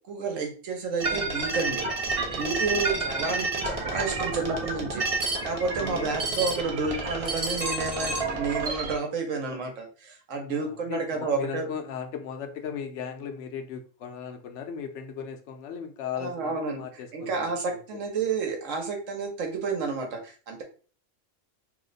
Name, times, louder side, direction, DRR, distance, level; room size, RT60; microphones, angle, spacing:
voice 1, 0.1-11.7 16.2-16.8 17.1-20.6, right 4 dB, 75° right, 3 dB, 1.2 m, -30 dB
sound 1, 1.0-9.0, right 3 dB, 45° right, 0.5 m, -30 dB
voice 2, 5.8-6.1 10.5-18.0, left 7 dB, 70° left, 5 dB, 0.9 m, -37 dB
2.8 x 2.1 x 3.8 m, 0.38 s
omnidirectional pair, 1.3 m